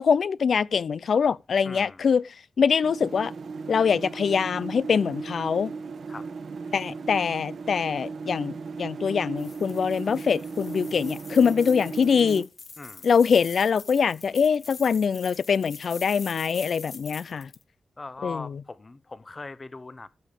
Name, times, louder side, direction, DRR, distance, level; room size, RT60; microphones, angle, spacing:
voice 1, 0.0-2.2 2.6-3.3 3.7-5.7 6.7-12.5 13.0-17.5 18.2-18.5, left 6 dB, 80° left, 0.5 m, -23 dB
voice 2, 1.6-2.1 6.1-6.3 12.8-13.1 18.0-20.1, left 3 dB, 40° left, 0.9 m, -40 dB
sound 1, 2.8-12.4, right 4 dB, 80° right, 1.3 m, -36 dB
sound 2, 9.4-17.6, left 4 dB, 60° left, 1.1 m, -45 dB
14.0 x 5.1 x 5.2 m
cardioid pair, 65°, 0 cm